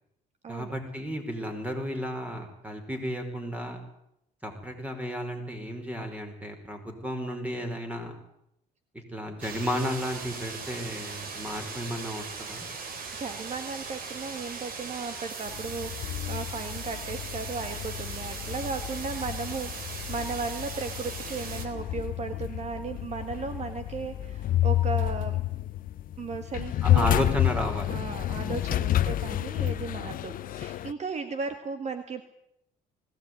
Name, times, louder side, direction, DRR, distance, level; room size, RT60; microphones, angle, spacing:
voice 1, 0.5-3.8 4.4-8.1 9.1-12.7 26.8-28.0 28.9-29.1, equal, 10° right, 5 dB, 5.1 m, -33 dB
sound 1, 9.4-21.7, right 4 dB, 60° right, 3.9 m, -39 dB
voice 2, 13.1-25.4 26.2-27.3 27.9-32.2, right 4 dB, 40° right, 9 dB, 1.8 m, -36 dB
sound 2, 15.5-30.9, left 13 dB, 55° left, 0.8 m, -30 dB
20.0 x 17.0 x 9.4 m, 0.81 s
cardioid pair, 110°, 17 cm